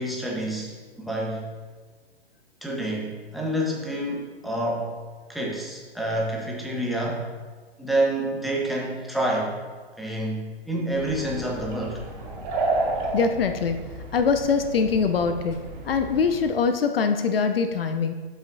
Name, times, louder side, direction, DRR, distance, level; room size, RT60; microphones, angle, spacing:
voice 1, 0.0-1.5 2.6-4.9 5.3-7.2 7.8-9.6 10.0-12.0, right 1 dB, ahead, -2 dB, 1.2 m, -28 dB
sound 1, 10.9-16.5, right 2 dB, 35° right, 2.0 m, -32 dB
voice 2, 13.1-13.8 14.1-15.6 15.8-18.1, left 5 dB, 65° left, 8 dB, 0.6 m, -23 dB
12.0 x 5.6 x 2.7 m, 1.4 s
figure-of-eight pair, 115°, 31 cm